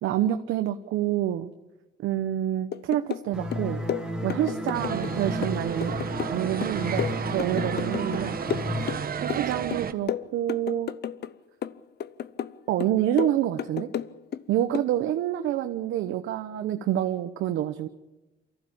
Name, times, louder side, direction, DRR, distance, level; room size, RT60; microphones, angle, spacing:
voice 1, 0.0-1.5 2.0-3.8 4.2-5.9 6.3-8.4 9.2-10.9 12.7-13.9 14.5-17.9, right 12 dB, 90° right, 7 dB, 1.0 m, -27 dB
sound 1, 2.7-3.3 3.5-5.1 5.4-8.2 8.5-9.5 9.7-11.3 11.6-12.5 12.8-14.4 14.7-14.9, left 9 dB, 55° left, 0.7 m, -32 dB
sound 2, 3.3-8.9, equal, 5° right, 3.7 m, -33 dB
sound 3, 4.7-9.9, right 7 dB, 50° right, 1.3 m, -33 dB
24.0 x 15.0 x 8.7 m, 1.0 s
cardioid pair, 90°, 20 cm